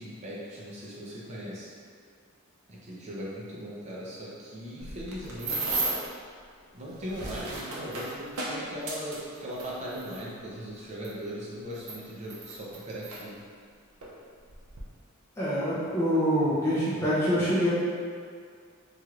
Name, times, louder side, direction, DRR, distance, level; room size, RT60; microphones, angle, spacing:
voice 1, 0.0-1.7 2.7-5.8 6.7-13.4, equal, 30° right, -6 dB, 0.6 m, -39 dB
sound 1, 4.8-6.1 6.9-10.2 11.0-11.1 11.7-13.2 14.0-14.1 14.5-14.8, right 2 dB, 85° right, 0.6 m, -34 dB
voice 2, 15.4-17.7, equal, 10° left, -11 dB, 0.5 m, -25 dB
3.0 x 3.0 x 2.4 m, 2.1 s
head